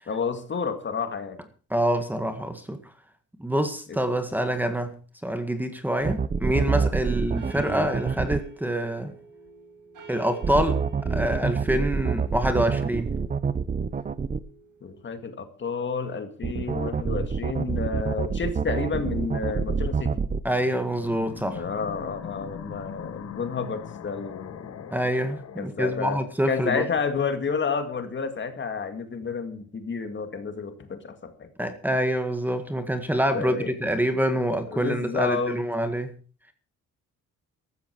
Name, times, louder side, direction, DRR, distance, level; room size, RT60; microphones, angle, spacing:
voice 1, 0.1-1.4 7.0-7.2 14.8-20.2 21.5-24.9 25.6-31.5 33.3-33.7 34.7-35.6, left 5 dB, 40° left, 8 dB, 2.2 m, -30 dB
voice 2, 1.7-2.8 3.4-4.9 5.2-9.1 10.1-10.8 11.1-13.1 20.4-21.6 24.9-26.8 31.6-36.1, right 1 dB, 5° right, 8 dB, 1.8 m, -26 dB
sound 1, 6.0-8.4 10.4-14.4 16.4-20.4, right 5 dB, 25° right, 0.7 m, -27 dB
sound 2, 6.3-15.1, right 4 dB, 90° right, 7.6 m, -47 dB
sound 3, 20.6-25.7, left 8 dB, 55° left, 1.4 m, -40 dB
15.0 x 13.5 x 4.7 m, 0.38 s
wide cardioid pair, 160°, 31 cm